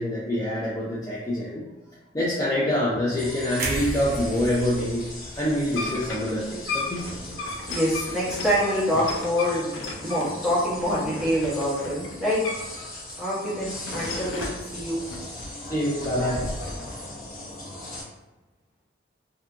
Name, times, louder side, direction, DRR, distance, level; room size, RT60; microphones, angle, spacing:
voice 1, 0.0-1.7 2.1-5.1 5.4-7.1 15.7-16.5, left 1 dB, 20° left, -8 dB, 0.4 m, -26 dB
sound 1, 3.2-18.0, left 1 dB, 45° left, 1.0 m, -39 dB
sound 2, 3.6-7.6 8.0-8.2, right 1 dB, 50° right, 0.6 m, -35 dB
sound 3, 5.5-12.9 13.2-14.7 15.1-16.9, left 2 dB, 80° left, 0.4 m, -35 dB
voice 2, 7.7-12.4 13.2-15.0, equal, ahead, -10 dB, 1.0 m, -26 dB
2.6 x 2.6 x 2.3 m, 1.1 s
head